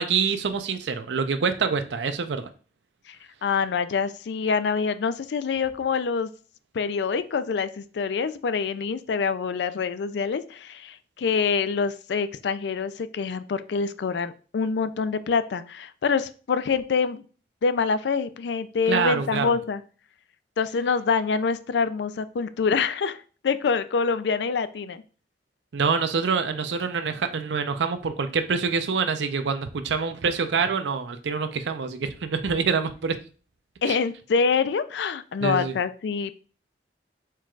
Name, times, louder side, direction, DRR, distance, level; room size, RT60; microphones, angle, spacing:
voice 1, 0.0-2.5 18.9-19.5 25.7-33.2 33.9-34.0 35.4-35.7, right 5 dB, 85° right, 9 dB, 0.5 m, -26 dB
voice 2, 3.4-6.3 6.7-17.2 17.6-19.8 20.6-23.2 23.4-25.0 33.8-36.3, left 5 dB, 70° left, 13 dB, 0.4 m, -26 dB
4.5 x 2.4 x 4.5 m, 0.38 s
head